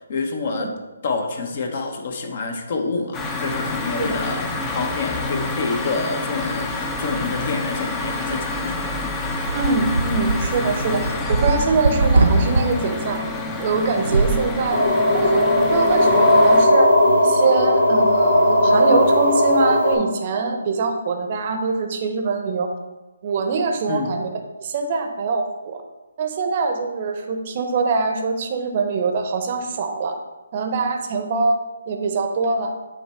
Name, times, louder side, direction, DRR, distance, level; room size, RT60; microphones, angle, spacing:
voice 1, 0.1-0.7 1.0-8.8 9.1-9.2 23.9-24.2, left 4 dB, 50° left, 4 dB, 0.9 m, -27 dB
sound 1, 3.1-16.7, left 2 dB, 15° left, 0.6 m, -28 dB
voice 2, 9.5-13.2 13.6-14.8 15.1-16.9 17.2-22.7 23.2-24.3 24.6-25.8 26.2-30.1 30.5-31.6 31.9-32.7, right 4 dB, 40° right, 5 dB, 0.8 m, -23 dB
sound 2, 9.5-12.6 14.0-14.4, right 2 dB, 85° right, 0.8 m, -21 dB
sound 3, 14.7-19.9, left 1 dB, 85° left, 2.0 m, -16 dB
8.8 x 3.1 x 4.4 m, 1.1 s
figure-of-eight pair, 145°, 0 cm